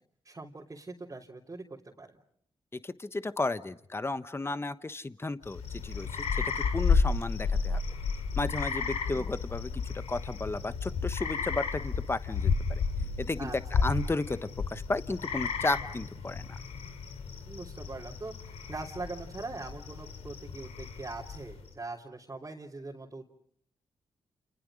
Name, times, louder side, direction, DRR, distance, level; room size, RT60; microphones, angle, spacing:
voice 1, 0.2-2.2 9.1-9.3 13.4-13.8 17.5-23.3, right 3 dB, 30° right, -3 dB, 3.3 m, -42 dB
voice 2, 2.8-7.8 8.4-9.8 10.1-12.8 13.2-13.5 13.8-16.6, left 2 dB, 25° left, 13 dB, 1.1 m, -34 dB
sound 1, 5.4-21.7, left 5 dB, 85° left, 2.5 m, -32 dB
30.0 x 28.5 x 5.0 m, 0.66 s
cardioid pair, 55°, 11 cm